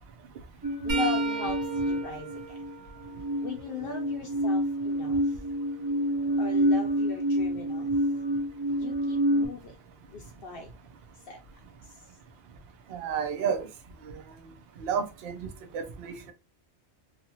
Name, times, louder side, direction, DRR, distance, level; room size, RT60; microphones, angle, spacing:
sound 1, 0.6-2.7 3.0-9.5, equal, 15° right, 1.2 m, -28 dB
voice 1, 0.8-2.6 3.4-5.4 6.4-7.9 8.8-9.8 10.1-10.7 11.3-11.4 11.9-12.1, left 4 dB, 60° left, 0.7 m, -39 dB
sound 2, 0.9-4.7 5.2-7.1 10.0-10.2 11.5-11.6 13.0-13.1, right 5 dB, 85° right, 1.3 m, -39 dB
voice 2, 12.9-13.6 14.8-15.3 15.7-16.3, right 7 dB, 65° right, 0.7 m, -30 dB
2.7 x 2.4 x 2.7 m
omnidirectional pair, 1.2 m